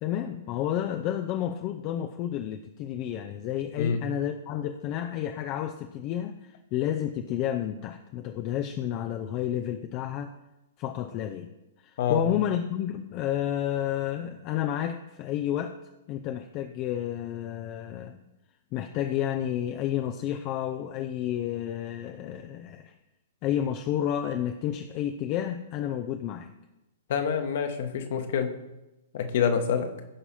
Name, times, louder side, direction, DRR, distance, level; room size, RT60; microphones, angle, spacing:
voice 1, 0.0-10.3 10.8-11.5 11.8-15.8 16.1-18.2 18.7-22.9 23.4-26.5, left 11 dB, 35° left, 6 dB, 0.6 m, -31 dB
voice 2, 27.1-28.5 29.1-29.9, left 7 dB, 50° left, 6 dB, 1.3 m, -26 dB
16.0 x 5.6 x 4.3 m, 0.98 s
figure-of-eight pair, 110°, 0 cm